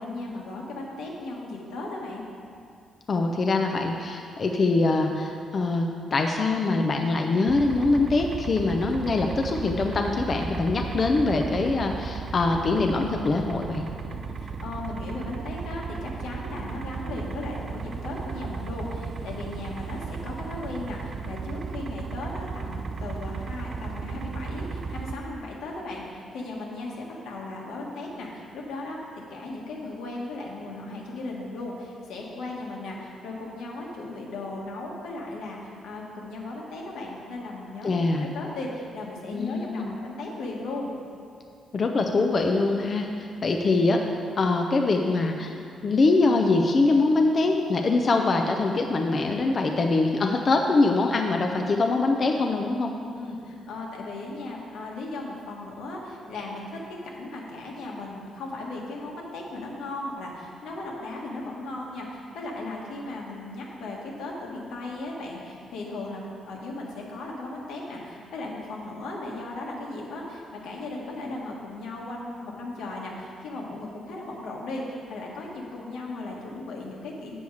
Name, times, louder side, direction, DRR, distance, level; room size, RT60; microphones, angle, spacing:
voice 1, 0.0-2.2 14.1-29.0 29.3-40.9 53.2-77.4, left 2 dB, 90° left, -2 dB, 1.5 m, -36 dB
voice 2, 3.1-13.9 37.8-38.3 39.3-40.0 41.7-44.0 44.4-45.5 45.8-52.9, left 3 dB, 30° left, 3 dB, 0.4 m, -23 dB
sound 1, 7.5-25.2, right 5 dB, 30° right, 0.4 m, -35 dB
8.0 x 7.0 x 4.8 m, 2.4 s
cardioid pair, 175°, 0 cm